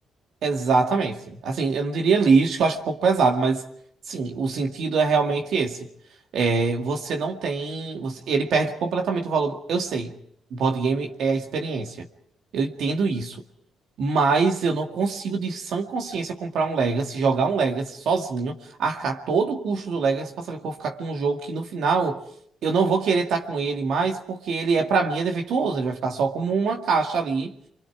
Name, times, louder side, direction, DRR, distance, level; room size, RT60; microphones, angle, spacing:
voice 1, 0.4-3.6 4.1-5.8 6.3-10.1 10.5-12.1 12.5-13.4 14.0-22.2 22.6-27.5, right 4 dB, 70° right, 2.2 m, -24 dB
28.5 x 24.5 x 4.9 m
cardioid pair, 90°, 0 cm